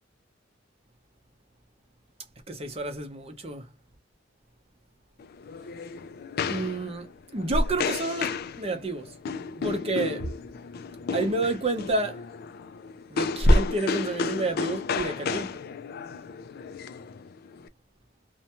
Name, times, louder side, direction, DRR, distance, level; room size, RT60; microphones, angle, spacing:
voice 1, 2.5-3.7 6.5-9.1 9.6-10.3 11.1-12.2 13.1-15.6, right 1 dB, 30° right, 0.7 m, -27 dB
sound 1, 5.2-17.7, left 5 dB, 50° left, 0.3 m, -33 dB
2.6 x 2.2 x 2.8 m
head